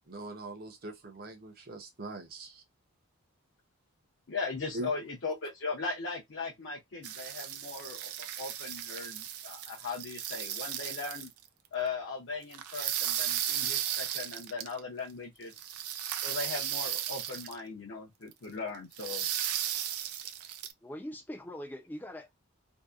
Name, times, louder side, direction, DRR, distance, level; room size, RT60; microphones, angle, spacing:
voice 1, 0.1-2.6 4.7-4.9 19.3-19.4, right 2 dB, 45° right, 0.6 m, -42 dB
voice 2, 4.3-11.3 11.7-15.5 16.2-19.3, left 4 dB, 55° left, 0.6 m, -38 dB
sound 1, 7.0-11.3 12.5-14.8 15.5-17.6 18.3-18.4 18.9-20.7, right 11 dB, 90° right, 0.4 m, -35 dB
voice 3, 20.8-22.3, equal, 10° left, 0.4 m, -42 dB
2.7 x 2.0 x 2.3 m
head